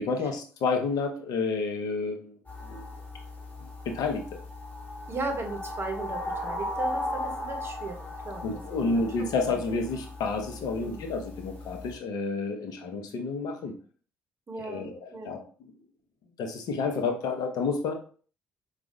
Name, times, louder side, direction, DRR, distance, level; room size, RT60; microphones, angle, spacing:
voice 1, 0.0-2.4 2.6-2.8 3.9-4.2 8.4-13.7 14.6-15.4 16.4-17.9, left 4 dB, 60° left, 4 dB, 0.7 m, -30 dB
sound 1, 2.5-11.9, left 1 dB, 20° left, 1.6 m, -37 dB
voice 2, 5.1-9.3 10.7-11.0 14.5-15.4, right 3 dB, 35° right, 3 dB, 0.9 m, -37 dB
4.6 x 2.4 x 2.6 m, 0.42 s
figure-of-eight pair, 50°, 8 cm